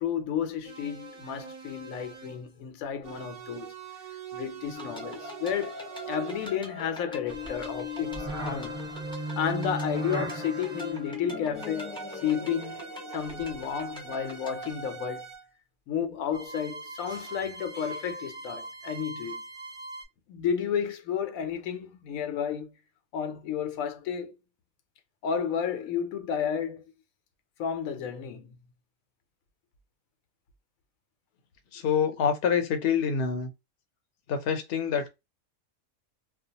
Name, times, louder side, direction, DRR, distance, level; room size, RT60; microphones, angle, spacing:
voice 1, 0.0-3.7 4.3-5.8 6.1-8.8 9.3-12.8 13.1-15.2 15.9-19.4 20.3-22.7 23.1-24.3 25.2-26.8 27.6-28.5, left 8 dB, 80° left, 1.0 m, -32 dB
sound 1, 0.6-2.5 3.0-6.6 7.2-11.2 11.5-15.5 16.3-20.0, right 4 dB, 45° right, 0.6 m, -42 dB
sound 2, 4.7-14.7, equal, 5° left, 0.5 m, -46 dB
sound 3, 4.7-13.7, left 1 dB, 10° right, 0.8 m, -38 dB
voice 2, 31.7-33.5 34.3-35.1, left 7 dB, 55° left, 0.7 m, -26 dB
2.4 x 2.3 x 2.7 m
omnidirectional pair, 1.4 m